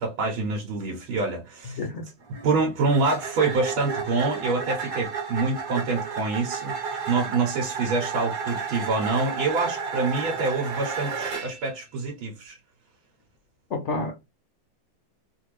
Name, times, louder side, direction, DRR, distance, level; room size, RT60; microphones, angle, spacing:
voice 1, 0.0-1.8 2.4-12.6, right 3 dB, 85° right, 1.6 m, -26 dB
voice 2, 1.7-2.1 13.7-14.1, left 3 dB, 75° left, 0.6 m, -29 dB
sound 1, 2.2-11.7, right 5 dB, 45° right, 1.3 m, -32 dB
3.5 x 2.5 x 3.0 m
omnidirectional pair, 2.2 m